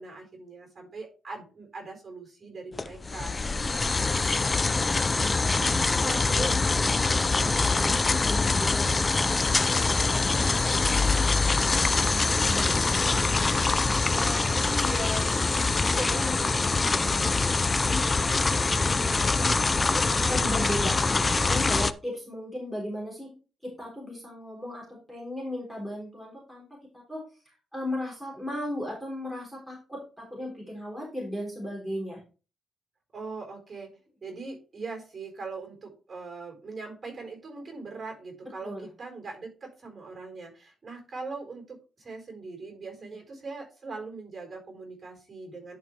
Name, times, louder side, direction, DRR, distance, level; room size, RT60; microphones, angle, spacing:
voice 1, 0.0-3.9 33.1-33.9 34.2-45.8, right 3 dB, 30° right, 3 dB, 4.5 m, -41 dB
sound 1, 2.8-21.9, left 3 dB, 25° left, 0.4 m, -24 dB
voice 2, 4.7-5.5 5.9-9.5 10.0-13.8 14.1-15.3 15.7-17.6 17.9-23.3 23.6-26.7 27.1-27.2 27.7-32.2 38.6-38.9 43.0-43.1, left 1 dB, ahead, -3 dB, 3.7 m, -37 dB
11.0 x 4.9 x 3.3 m, 0.34 s
cardioid pair, 105°, 0 cm